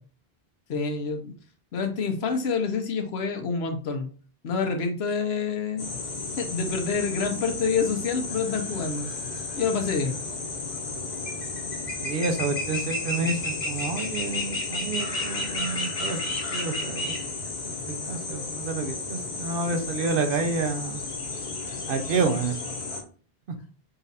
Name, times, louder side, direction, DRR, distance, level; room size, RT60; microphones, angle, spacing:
voice 1, 0.7-1.3 1.7-4.1 4.4-5.9 6.4-9.1 9.6-10.2, left 5 dB, 85° left, 5 dB, 1.1 m, -27 dB
sound 1, 5.8-23.0, left 3 dB, 50° left, 0.9 m, -32 dB
voice 2, 12.0-17.1 17.9-21.0 21.9-22.6, right 4 dB, 65° right, 6 dB, 0.8 m, -29 dB
4.0 x 2.5 x 4.0 m, 0.39 s
omnidirectional pair, 1.0 m